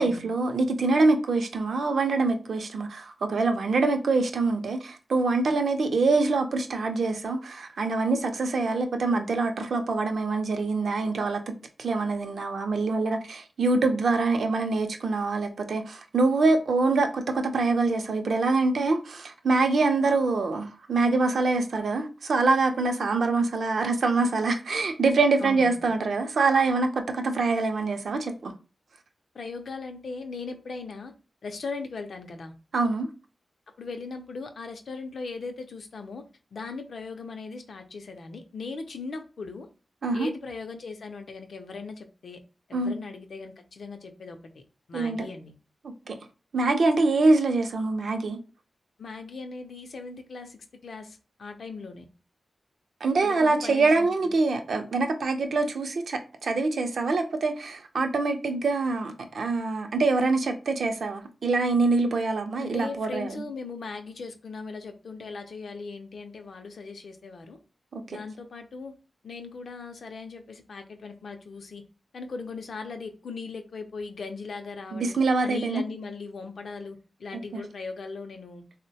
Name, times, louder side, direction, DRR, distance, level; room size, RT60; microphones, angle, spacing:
voice 1, 0.0-11.4 11.8-28.5 32.7-33.1 40.0-40.3 42.7-42.9 44.9-45.3 45.8-46.2 46.5-48.4 53.0-63.4 67.9-68.2 74.9-75.8 77.5-77.6, right 3 dB, 65° right, 0.5 m, -25 dB
voice 2, 25.4-25.9 29.3-31.1 31.4-32.5 33.8-36.2 36.5-39.7 40.1-42.4 42.7-44.6 44.9-45.5 49.0-52.1 53.2-54.3 62.6-67.6 68.1-68.9 69.2-71.8 72.1-75.1 75.4-78.6, left 4 dB, 65° left, 0.4 m, -39 dB
3.7 x 2.1 x 2.7 m
wide cardioid pair, 175°, 0 cm